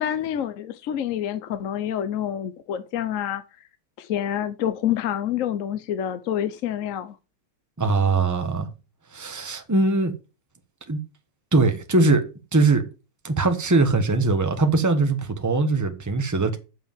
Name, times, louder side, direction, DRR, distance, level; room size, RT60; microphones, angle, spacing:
voice 1, 0.0-3.4 4.0-7.2, left 10 dB, 60° left, 0.9 m, -27 dB
voice 2, 7.8-8.7 9.1-10.1 10.9-11.0 11.5-12.2 12.5-12.8 13.2-16.6, right 3 dB, 10° right, 1.0 m, -21 dB
7.7 x 5.7 x 7.4 m
omnidirectional pair, 2.0 m